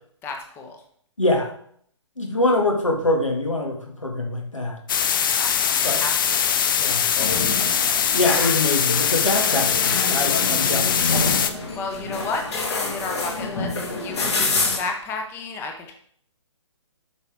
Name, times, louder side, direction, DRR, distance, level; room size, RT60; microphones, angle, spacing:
voice 1, 0.2-0.8 5.3-6.6 11.7-15.9, left 3 dB, 15° left, 4 dB, 0.8 m, -32 dB
voice 2, 1.2-1.5 2.2-4.8 5.8-6.0 6.8-7.1 8.1-11.1, left 2 dB, 90° left, 2 dB, 2.0 m, -24 dB
sound 1, 4.9-11.5, left 8 dB, 45° left, 0.6 m, -22 dB
AC Alicante Breakfast, 7.2-14.8, left 3 dB, 60° left, 2.3 m, -27 dB
8.1 x 5.6 x 3.4 m, 0.62 s
figure-of-eight pair, 135°, 16 cm